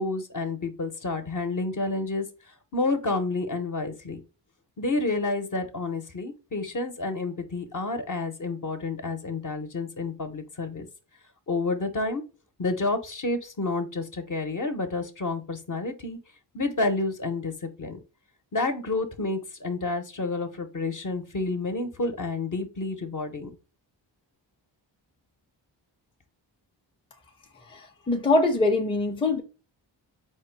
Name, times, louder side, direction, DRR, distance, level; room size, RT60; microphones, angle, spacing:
voice 1, 0.0-2.3 2.7-4.2 4.8-10.9 11.5-12.2 12.6-16.2 16.5-18.0 18.5-23.5, left 3 dB, 45° left, 0.9 m, -29 dB
voice 2, 27.7-29.4, left 2 dB, 10° left, 0.6 m, -23 dB
4.3 x 2.2 x 4.5 m
cardioid pair, 65°, 44 cm